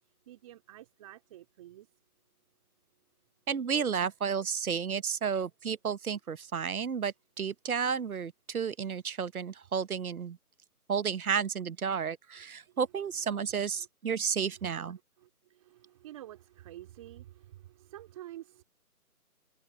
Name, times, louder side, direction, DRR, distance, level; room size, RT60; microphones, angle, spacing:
voice 1, 0.3-1.9 13.7-13.9 14.4-18.6, right 13 dB, 20° right, 3.7 m, -50 dB
voice 2, 3.5-10.4 10.9-15.0, right 6 dB, 65° right, 1.0 m, -32 dB
open air
figure-of-eight pair, 160°, 46 cm